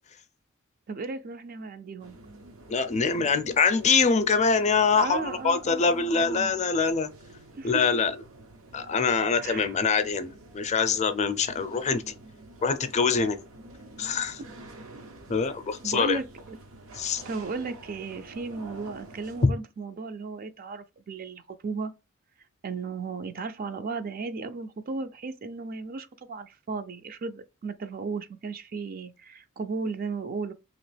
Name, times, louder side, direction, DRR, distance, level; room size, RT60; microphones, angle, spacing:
voice 1, 0.9-2.2 4.9-6.5 7.6-7.8 9.4-9.8 14.4-14.5 15.8-16.6 17.2-21.9 22.6-30.5, right 4 dB, 45° right, 0.4 m, -35 dB
sound 1, 2.0-19.5, right 2 dB, 85° right, 0.8 m, -49 dB
voice 2, 2.7-7.1 7.6-8.1 8.7-12.1 12.6-13.4 14.0-14.4 15.3-16.2 17.0-17.2 19.4-19.5, left 5 dB, 35° left, 0.4 m, -24 dB
3.0 x 2.8 x 3.2 m
head